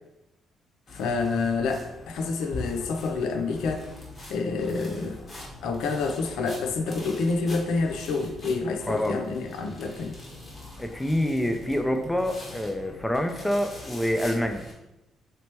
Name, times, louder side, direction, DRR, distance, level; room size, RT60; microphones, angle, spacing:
voice 1, 0.9-3.8 4.3-5.2 5.6-10.2, left 4 dB, 85° left, 4 dB, 0.4 m, -28 dB
sound 1, 0.9-14.7, left 2 dB, 35° left, 1.1 m, -43 dB
voice 2, 8.9-9.2 10.8-14.7, equal, 5° left, 5 dB, 0.4 m, -26 dB
3.2 x 2.9 x 2.9 m, 0.94 s
cardioid pair, 90°, 0 cm